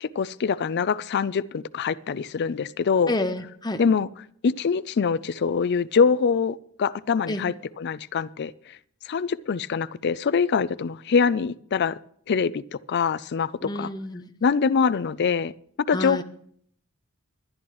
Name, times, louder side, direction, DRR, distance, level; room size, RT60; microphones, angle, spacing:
voice 1, 0.0-3.1 3.8-4.1 4.4-8.8 9.1-12.0 12.3-13.9 14.4-15.5 15.9-16.2, left 5 dB, 50° left, 0.4 m, -24 dB
voice 2, 3.1-3.8 7.3-7.4 13.6-14.3 15.9-16.2, left 2 dB, 20° left, 0.8 m, -29 dB
21.5 x 10.5 x 3.1 m
head